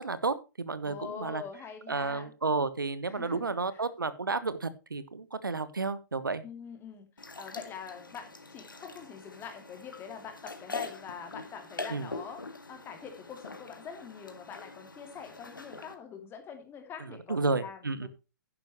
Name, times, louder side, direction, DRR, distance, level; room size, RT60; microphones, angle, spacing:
voice 1, 0.0-1.4 1.9-6.4 11.9-12.1 17.1-18.1, right 3 dB, 85° right, 15 dB, 1.2 m, -32 dB
voice 2, 0.8-2.3 3.1-3.8 6.4-12.4 12.7-18.1, left 7 dB, 20° left, 5 dB, 2.7 m, -44 dB
sound 1, 7.2-15.9, left 3 dB, 85° left, 1.9 m, -44 dB
11.0 x 10.5 x 3.0 m, 0.28 s
figure-of-eight pair, 120°, 11 cm